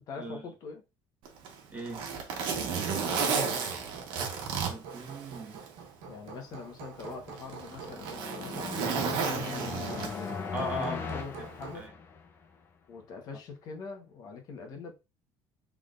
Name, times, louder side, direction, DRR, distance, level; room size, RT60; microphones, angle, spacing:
voice 1, 0.1-0.8 2.8-3.6 6.0-9.6 10.1-11.9 12.9-15.0, left 4 dB, 45° left, 1.2 m, -43 dB
Zipper (clothing), 1.3-5.7 6.1-6.2 7.0-10.5 11.6-11.8, right 6 dB, 60° right, 1.2 m, -33 dB
voice 2, 1.7-2.0 4.7-5.6 10.5-11.0 11.4-11.5 11.7-11.9, equal, 20° right, 1.4 m, -38 dB
Hammer, 2.5-11.9, right 5 dB, 90° right, 1.1 m, -47 dB
sound 1, 7.3-12.4, left 5 dB, 25° left, 0.7 m, -39 dB
5.8 x 3.6 x 2.5 m
cardioid pair, 165°, 9 cm